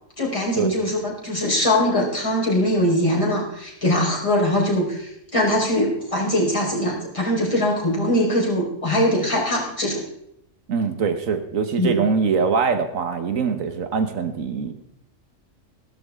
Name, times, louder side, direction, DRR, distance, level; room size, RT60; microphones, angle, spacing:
voice 1, 0.2-10.0 11.8-11.9, left 1 dB, 25° left, -4 dB, 4.4 m, -22 dB
voice 2, 10.7-14.7, right 5 dB, 85° right, 8 dB, 1.6 m, -23 dB
15.5 x 12.5 x 3.6 m, 0.75 s
omnidirectional pair, 1.4 m